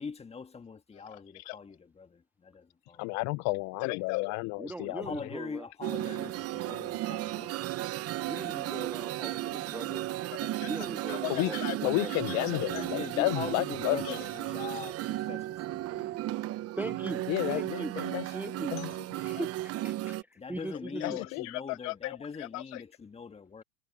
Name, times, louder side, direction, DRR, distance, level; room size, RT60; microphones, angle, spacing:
voice 1, 0.0-3.2 4.9-9.8 12.9-16.2 20.4-23.6, left 5 dB, 15° left, 1.6 m, -43 dB
voice 2, 3.0-5.1 10.4-10.7 11.1-14.2 17.3-18.2 18.7-18.9 19.3-19.4 21.0-22.8, left 25 dB, 40° left, 0.6 m, -32 dB
voice 3, 4.6-5.7 8.2-10.2 10.6-12.3 16.7-17.9 18.3-18.8 19.2-21.2, right 2 dB, 5° right, 0.6 m, -40 dB
sound 1, 5.8-20.2, right 15 dB, 30° right, 1.0 m, -35 dB
hypercardioid pair, 110°, 46 cm